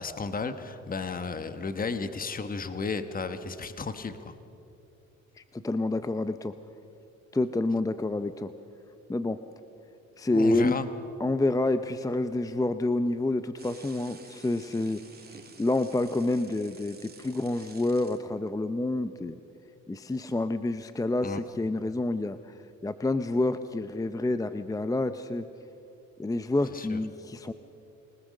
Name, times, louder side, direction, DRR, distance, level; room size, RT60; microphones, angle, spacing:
voice 1, 0.0-4.3 10.3-10.9 21.2-21.4 26.7-27.0, left 4 dB, 30° left, 10 dB, 1.3 m, -33 dB
voice 2, 5.4-6.5 7.3-8.5 9.1-9.4 10.2-10.8 11.2-15.0 15.6-19.4 19.9-22.5 22.8-25.5 26.2-27.5, left 2 dB, 10° left, 11 dB, 0.6 m, -28 dB
sound 1, 13.6-18.2, right 4 dB, 30° right, 2.6 m, -51 dB
28.0 x 19.0 x 6.5 m, 2.7 s
cardioid pair, 90°, 30 cm